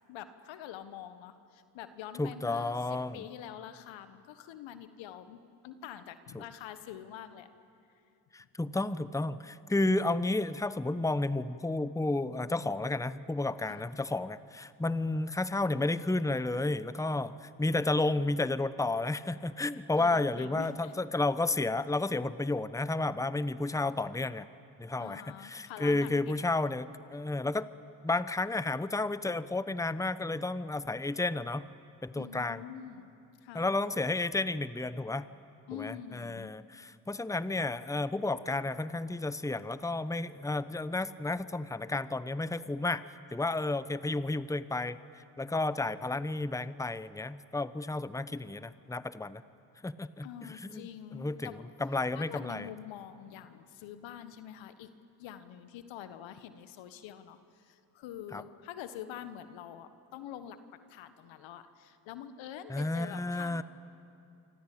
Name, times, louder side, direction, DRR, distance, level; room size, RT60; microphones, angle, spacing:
voice 1, 0.1-7.5 13.7-13.9 20.0-20.9 25.0-26.3 32.2-33.1 33.4-33.7 35.7-36.5 50.2-51.7 52.1-54.9 55.2-60.6 60.9-63.6, left 10 dB, 75° left, 11 dB, 1.5 m, -46 dB
voice 2, 2.2-3.2 6.3-6.4 8.3-24.5 24.8-27.7 28.0-31.7 32.0-32.6 33.5-35.3 35.8-49.4 49.8-50.8 51.1-51.5 51.8-52.7 58.3-58.4 62.7-63.6, left 2 dB, 5° left, 15 dB, 1.0 m, -32 dB
27.5 x 25.0 x 8.6 m, 2.6 s
hypercardioid pair, 45°, 46 cm